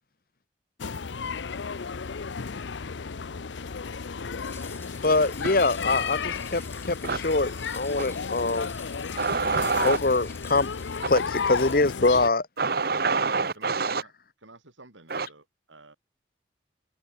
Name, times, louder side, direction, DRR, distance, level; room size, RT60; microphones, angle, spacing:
sound 1, 0.8-12.3, left 5 dB, 75° left, 0.7 m, -33 dB
sound 2, 4.4-11.8, left 4 dB, 15° left, 2.7 m, -49 dB
voice 1, 4.9-8.7 9.8-10.7 11.1-12.5, left 3 dB, 50° left, 1.2 m, -24 dB
voice 2, 9.2-10.0 12.6-14.0 15.1-15.3, right 4 dB, 55° right, 1.1 m, -26 dB
voice 3, 13.3-14.1 14.4-16.0, right 2 dB, 90° right, 4.5 m, -50 dB
head